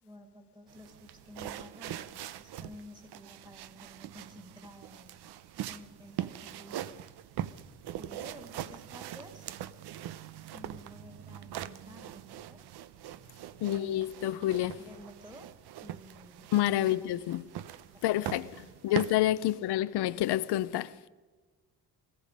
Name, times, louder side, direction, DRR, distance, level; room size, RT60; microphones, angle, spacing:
voice 1, 0.0-5.2 5.6-7.1 7.4-7.7 8.0-9.5 10.5-12.7 13.6-14.2 14.8-15.5 15.8-17.1 17.9-19.1 19.5-19.6, equal, 10° right, 2.2 m, -52 dB
sound 1, 0.7-19.1, right 11 dB, 80° right, 0.7 m, -42 dB
voice 2, 13.6-14.8 16.5-17.4 18.0-18.5 18.8-21.1, left 14 dB, 90° left, 0.6 m, -28 dB
18.0 x 15.0 x 5.3 m
cardioid pair, 140°, 39 cm